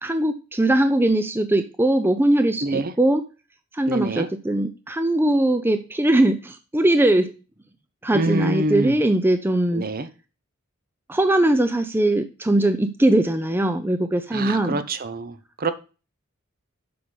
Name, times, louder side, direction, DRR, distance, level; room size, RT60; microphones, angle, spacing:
voice 1, 0.0-3.2 3.7-7.3 8.0-9.8 11.1-14.8, right 1 dB, 10° right, 0.5 m, -20 dB
voice 2, 2.6-2.9 3.9-4.3 8.1-9.0 9.7-10.1 14.3-15.7, right 2 dB, 45° right, 0.8 m, -26 dB
7.7 x 5.5 x 5.1 m
head